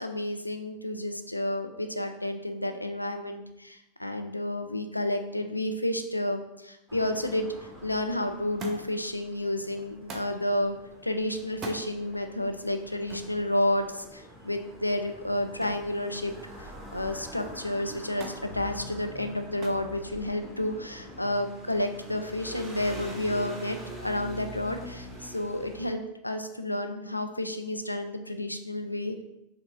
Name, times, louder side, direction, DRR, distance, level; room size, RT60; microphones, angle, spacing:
voice 1, 0.0-7.5 7.8-10.8 11.0-16.3 16.9-23.8 24.0-29.2, left 1 dB, 85° left, 7 dB, 0.3 m, -31 dB
sound 1, 6.9-25.9, equal, ahead, 1.0 m, -45 dB
Thump thud, 8.6-9.1 10.1-10.4 11.5-11.9 13.1-13.4 15.6-15.9 16.3-16.8 18.2-18.5 19.6-19.9 20.8-21.3 22.3-22.4, right 1 dB, 25° right, 0.7 m, -41 dB
4.5 x 3.1 x 3.2 m, 0.90 s
figure-of-eight pair, 90°, 0 cm